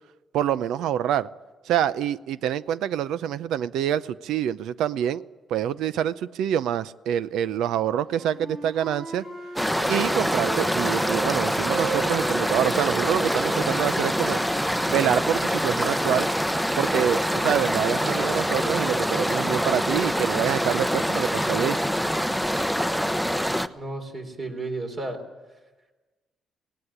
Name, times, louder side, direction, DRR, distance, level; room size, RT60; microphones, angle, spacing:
voice 1, 0.3-1.3 1.7-5.2 5.5-9.2 9.9-14.4 14.9-16.3 16.8-21.8, right 10 dB, 85° right, 16 dB, 0.6 m, -26 dB
Wind instrument woodwind instrument, 8.0-11.3 11.6-15.3, right 4 dB, 60° right, 5.5 m, -36 dB
sound 1, 9.6-23.7, equal, ahead, 0.8 m, -25 dB
voice 2, 23.8-25.2, right 2 dB, 40° right, 4 dB, 3.9 m, -33 dB
18.0 x 17.5 x 9.9 m, 1.2 s
cardioid pair, 90°, 0 cm